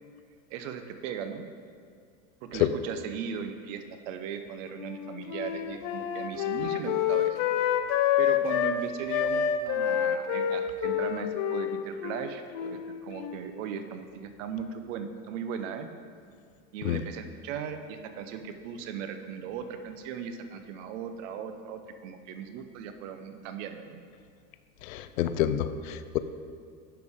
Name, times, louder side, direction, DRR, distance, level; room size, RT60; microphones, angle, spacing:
voice 1, 0.5-1.4 2.4-7.4 8.2-15.9 16.7-24.0, right 7 dB, 65° right, 8 dB, 0.8 m, -38 dB
Wind instrument woodwind instrument, 4.8-8.8 9.1-13.6, left 10 dB, 40° left, 0.5 m, -28 dB
voice 2, 24.9-26.2, left 12 dB, 80° left, 11 dB, 0.6 m, -27 dB
10.5 x 5.4 x 3.6 m, 2.2 s
supercardioid pair, 130°, 41 cm